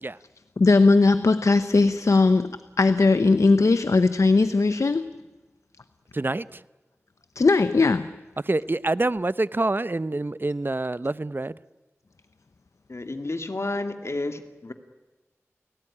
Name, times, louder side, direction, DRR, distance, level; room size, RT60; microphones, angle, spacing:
voice 1, 0.6-5.1 7.4-8.1, left 3 dB, 85° left, 0.9 m, -19 dB
voice 2, 6.1-6.6 8.4-11.6, right 2 dB, 45° right, 0.8 m, -26 dB
voice 3, 12.9-14.7, left 2 dB, 65° left, 2.5 m, -31 dB
29.5 x 18.0 x 10.0 m
wide cardioid pair, 45°, 5 cm